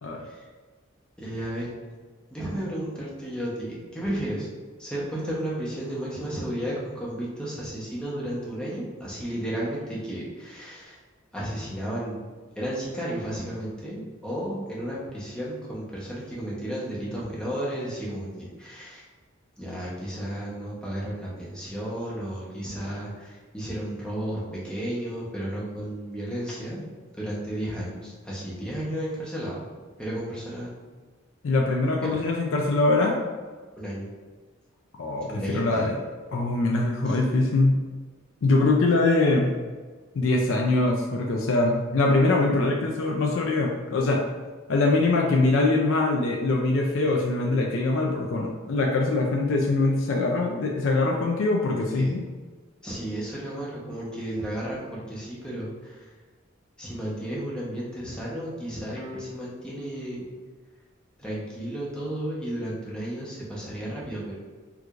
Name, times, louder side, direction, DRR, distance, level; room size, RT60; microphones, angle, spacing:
voice 1, 1.2-1.7 2.3-4.5 4.8-11.0 11.3-19.1 19.6-26.8 27.1-29.6 30.0-30.7 32.0-32.3 33.8-34.1 35.3-35.9 37.0-37.2 51.9-52.1 52.8-56.1 56.8-60.3 61.2-64.4, right 1 dB, 5° left, -6 dB, 0.7 m, -33 dB
voice 2, 31.4-33.1 35.0-35.9 36.3-37.8 38.4-39.5 40.2-44.2 44.7-52.2, left 2 dB, 70° left, 0 dB, 0.4 m, -23 dB
4.5 x 2.4 x 2.4 m, 1.4 s
head